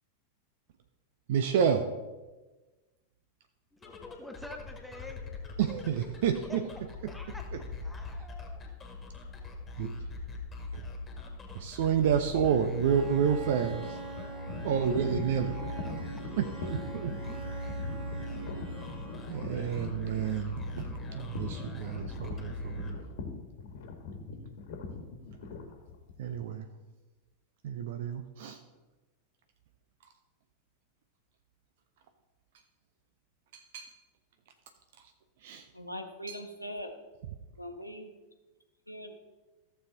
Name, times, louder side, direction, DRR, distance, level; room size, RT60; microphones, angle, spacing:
voice 1, 1.3-1.9 5.6-6.6 9.8-10.0 10.7-10.8 11.5-14.0 14.6-15.6 16.4-17.1 19.3-22.9 26.2-26.7 27.6-28.6 33.5-33.9 35.4-35.7 36.3-36.4, right 8 dB, 55° right, 8 dB, 0.6 m, -30 dB
sound 1, 3.7-23.5, left 1 dB, 20° left, 1.9 m, -41 dB
voice 2, 3.8-5.3 6.5-6.6 7.1-8.6 13.8-14.6 15.9-16.0, left 1 dB, ahead, 4 dB, 1.2 m, -48 dB
sound 2, 12.4-26.5, left 4 dB, 55° left, 1.5 m, -42 dB
Bowed string instrument, 12.8-19.5, right 5 dB, 40° right, 1.7 m, -44 dB
voice 3, 35.7-37.0 37.6-38.1 38.9-39.2, equal, 90° right, 6 dB, 0.9 m, -41 dB
14.5 x 7.1 x 3.9 m, 1.2 s
figure-of-eight pair, 90°, 0 cm